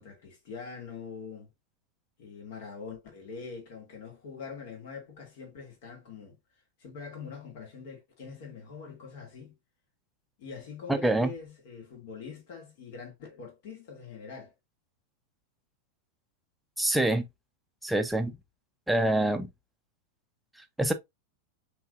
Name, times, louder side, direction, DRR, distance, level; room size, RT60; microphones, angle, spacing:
voice 1, 0.0-1.5 2.2-6.3 6.8-9.5 10.4-14.5, left 5 dB, 50° left, 2.3 m, -43 dB
voice 2, 10.9-11.3 16.8-17.2 17.8-18.3 18.9-19.5 20.8-20.9, right 1 dB, 5° right, 0.7 m, -25 dB
5.6 x 3.4 x 2.6 m
figure-of-eight pair, 90°, 0 cm